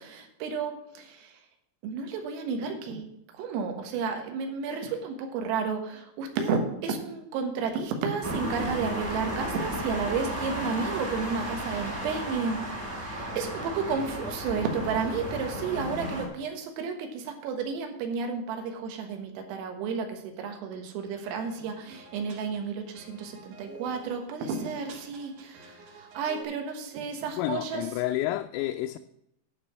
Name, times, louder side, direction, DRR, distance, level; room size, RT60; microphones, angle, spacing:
voice 1, 0.0-1.4 1.8-3.1 3.3-27.8, right 5 dB, 80° right, 4.0 m, -32 dB
sound 1, 8.2-16.3, equal, 35° right, 1.0 m, -34 dB
sound 2, 21.2-26.4, right 3 dB, 60° right, 2.1 m, -49 dB
voice 2, 27.4-29.0, left 14 dB, 85° left, 3.2 m, -30 dB
11.5 x 5.1 x 7.0 m
omnidirectional pair, 5.9 m